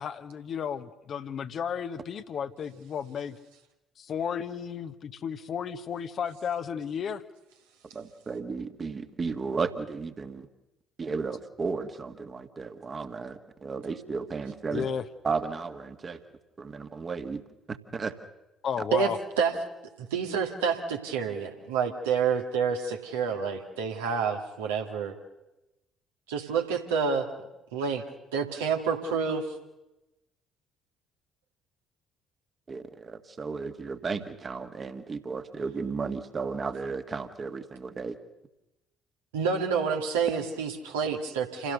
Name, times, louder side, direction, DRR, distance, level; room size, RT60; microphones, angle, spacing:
voice 1, 0.0-3.4 4.0-7.2 14.7-15.0 18.6-19.2, left 7 dB, 50° left, 10 dB, 1.2 m, -33 dB
voice 2, 7.9-10.5 11.0-14.9 15.2-16.2 16.6-17.4 17.7-18.1 32.7-38.2, right 4 dB, 35° right, 8 dB, 1.9 m, -34 dB
voice 3, 20.1-25.1 26.3-27.3 27.7-28.0 28.3-29.5 39.3-41.7, right 6 dB, 75° right, 2 dB, 2.2 m, -28 dB
28.0 x 16.5 x 6.7 m, 0.97 s
figure-of-eight pair, 50°, 0 cm